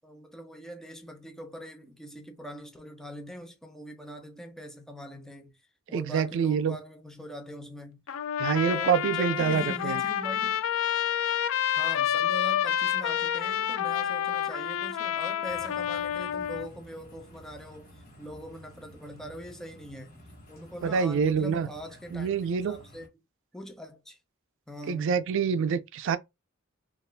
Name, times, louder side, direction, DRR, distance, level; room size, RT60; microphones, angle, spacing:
voice 1, 0.0-5.6 5.9-8.0 8.7-10.6 11.7-20.2 20.5-23.1 23.5-24.2 24.7-25.2, equal, 5° left, 0.4 m, -42 dB
voice 2, 5.9-6.8 8.4-10.0 20.8-21.7 22.1-22.8 24.9-26.2, right 6 dB, 65° right, 0.3 m, -26 dB
Trumpet, 8.1-16.7, left 10 dB, 70° left, 0.3 m, -29 dB
sound 1, 15.5-23.1, equal, 45° left, 1.1 m, -52 dB
2.4 x 2.4 x 3.3 m
head